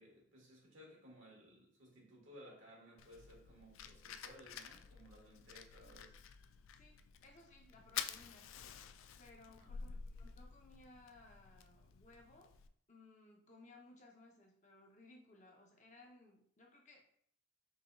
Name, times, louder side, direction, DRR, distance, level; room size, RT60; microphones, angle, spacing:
voice 1, 0.0-6.2 9.5-9.7, equal, 80° right, -2 dB, 1.8 m, -59 dB
Fire, 3.0-12.7, left 8 dB, 90° left, 0.3 m, -50 dB
voice 2, 6.8-8.5 9.2-12.5 12.9-17.0, left 2 dB, 35° left, 0 dB, 0.8 m, -61 dB
5.6 x 3.6 x 2.4 m, 0.63 s
head